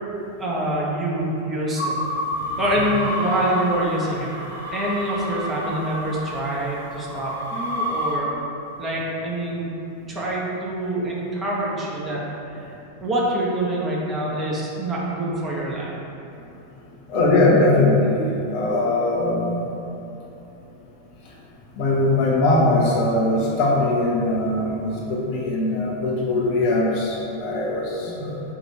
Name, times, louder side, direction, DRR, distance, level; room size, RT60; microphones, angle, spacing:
voice 1, 0.4-2.0 2.6-4.3 4.7-8.3 8.8-9.7 10.1-12.7 13.0-16.0 28.1-28.4, right 1 dB, 20° right, -5 dB, 0.9 m, -26 dB
sound 1, 1.8-8.2, equal, 75° right, 1.1 m, -29 dB
voice 2, 17.1-19.6 21.8-28.4, left 2 dB, 45° left, -3 dB, 0.8 m, -21 dB
4.7 x 2.6 x 4.4 m, 2.9 s
figure-of-eight pair, 90°, 0 cm